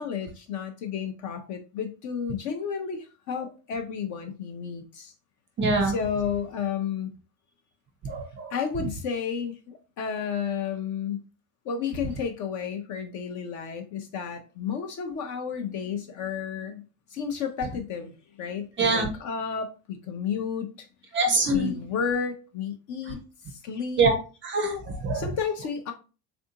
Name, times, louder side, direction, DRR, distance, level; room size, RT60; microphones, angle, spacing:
voice 1, 0.0-5.1 5.8-7.1 8.5-11.2 11.6-20.9 21.5-23.2 23.5-24.1 25.1-25.9, left 7 dB, 40° left, 6 dB, 0.4 m, -32 dB
voice 2, 5.6-5.9 8.0-8.5 18.8-19.1 21.1-21.7 24.0-24.1 24.4-25.2, right 3 dB, 25° right, 4 dB, 0.4 m, -24 dB
3.5 x 2.5 x 2.7 m, 0.33 s
cardioid pair, 150°, 48 cm